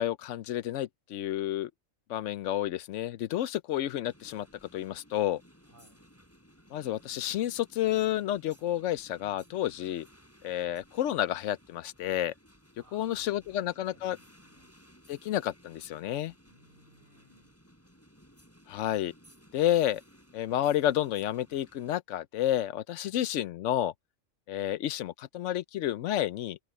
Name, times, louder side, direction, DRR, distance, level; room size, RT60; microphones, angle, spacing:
voice 1, 0.0-1.7 2.1-4.5 4.7-5.4 6.7-10.1 10.4-12.3 12.9-14.2 15.1-16.3 18.7-19.1 19.5-20.0 20.3-23.9 24.5-26.6, left 12 dB, 75° left, 0.9 m, -30 dB
sound 1, 4.1-21.9, equal, 10° left, 7.0 m, -59 dB
voice 2, 5.6-6.0 12.8-14.7 16.4-17.5 23.0-23.2, right 1 dB, 40° right, 7.9 m, -63 dB
omnidirectional pair, 1.3 m